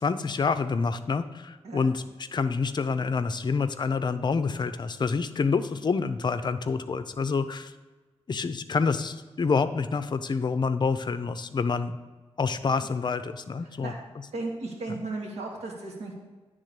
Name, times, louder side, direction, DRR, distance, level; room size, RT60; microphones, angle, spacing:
voice 1, 0.0-2.0 2.3-7.7 8.3-12.0 12.4-13.9, left 4 dB, 40° left, 11 dB, 0.5 m, -27 dB
voice 2, 14.3-16.1, right 2 dB, 75° right, -1 dB, 1.7 m, -35 dB
9.9 x 3.6 x 6.7 m, 1.3 s
cardioid pair, 85°, 11 cm